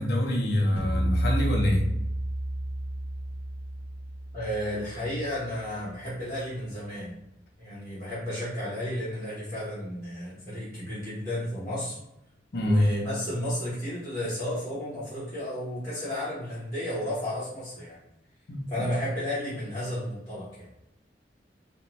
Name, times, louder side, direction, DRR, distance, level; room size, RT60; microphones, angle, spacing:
voice 1, 0.0-1.8 12.5-12.8 18.5-18.6, left 1 dB, 60° left, 0 dB, 0.5 m, -25 dB
sound 1, 0.8-6.1, right 1 dB, 30° right, 0.4 m, -31 dB
voice 2, 4.3-7.1 7.6-12.0 12.6-18.0 18.7-20.7, equal, 15° left, -12 dB, 0.8 m, -33 dB
2.5 x 2.1 x 2.9 m, 0.84 s
head